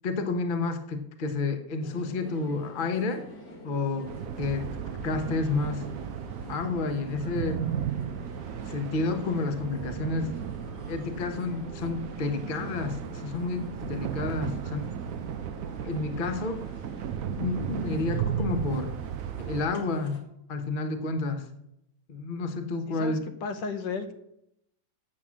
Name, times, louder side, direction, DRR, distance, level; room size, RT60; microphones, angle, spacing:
voice 1, 0.0-3.2 3.6-4.1 4.4-4.7 5.0-5.8 6.5-7.6 8.6-10.4 10.9-14.9 15.8-16.6 17.4-18.9 19.4-20.2 20.5-21.5 22.1-23.2, left 3 dB, 35° left, 7 dB, 1.0 m, -30 dB
sound 1, 1.8-20.2, left 1 dB, 60° left, 2.6 m, -46 dB
sound 2, 4.0-19.7, right 9 dB, 75° right, 0.8 m, -35 dB
voice 2, 22.9-24.1, left 4 dB, 80° left, 8 dB, 1.7 m, -34 dB
8.8 x 7.3 x 7.4 m, 0.79 s
omnidirectional pair, 2.0 m